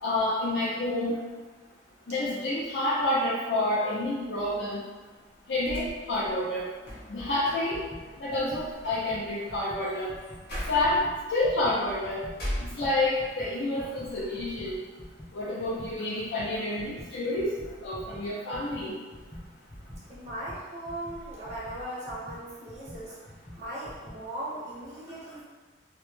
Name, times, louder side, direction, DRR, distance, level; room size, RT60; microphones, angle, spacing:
voice 1, 0.0-1.2 2.1-4.8 5.5-6.7 7.1-7.8 8.2-10.1 10.7-11.0 11.3-12.2 12.6-14.8 15.3-17.5 17.8-18.9, left 1 dB, 75° left, -8 dB, 0.5 m, -28 dB
sound 1, 5.4-13.3 13.7-14.5, equal, 60° left, 0.8 m, -41 dB
sound 2, 7.7-10.5 10.8-24.3, equal, 30° left, 0.8 m, -47 dB
voice 2, 20.1-23.2 23.6-25.4, right 1 dB, 40° right, -7 dB, 0.4 m, -38 dB
2.1 x 2.0 x 3.0 m, 1.3 s
head